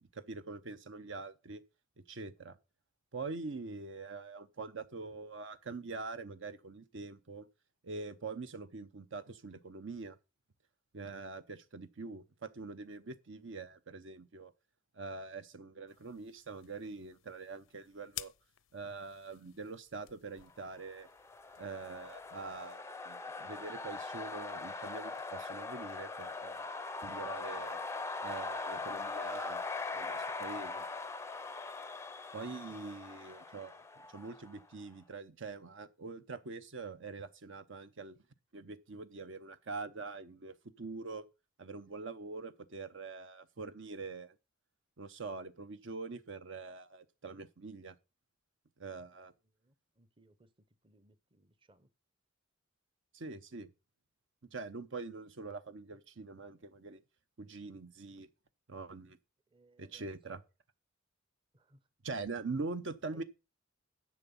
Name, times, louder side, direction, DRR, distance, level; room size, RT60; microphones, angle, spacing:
voice 1, 0.0-1.6 2.0-2.6 3.1-7.5 7.8-10.2 10.9-14.5 14.9-18.3 18.7-21.1 21.6-26.7 27.0-27.8 28.2-30.8 32.3-33.8 34.1-38.2 38.5-41.2 41.6-44.3 45.0-47.9 48.8-49.3 53.1-53.7 54.5-57.0 57.4-58.3 58.7-59.2 59.8-60.4 62.0-63.2, right 3 dB, 65° right, 0.8 m, -44 dB
sound 1, 15.9-22.7, left 15 dB, 80° left, 0.6 m, -53 dB
sound 2, 20.9-34.7, left 3 dB, 15° left, 0.5 m, -41 dB
voice 2, 49.6-50.5 50.8-51.9 59.5-60.1 61.5-61.8 63.1-63.2, right 1 dB, 25° right, 0.8 m, -64 dB
10.5 x 7.1 x 5.5 m
head